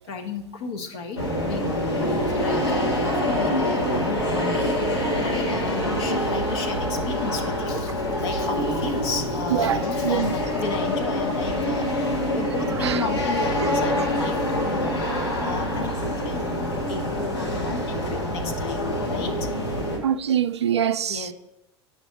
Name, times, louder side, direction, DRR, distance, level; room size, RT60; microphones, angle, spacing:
voice 1, 0.1-4.8 5.2-15.0 15.4-16.6 16.9-19.5 21.1-21.3, left 4 dB, 65° left, 1.1 m, -33 dB
sound 1, 1.2-20.0, left 1 dB, 80° left, 1.7 m, -25 dB
voice 2, 9.5-10.4 12.7-13.1 13.6-13.7 14.0-14.1 17.4-17.5 18.5-18.6 20.0-21.3, right 9 dB, 85° right, 0.4 m, -25 dB
9.2 x 5.4 x 5.1 m
figure-of-eight pair, 75°, 14 cm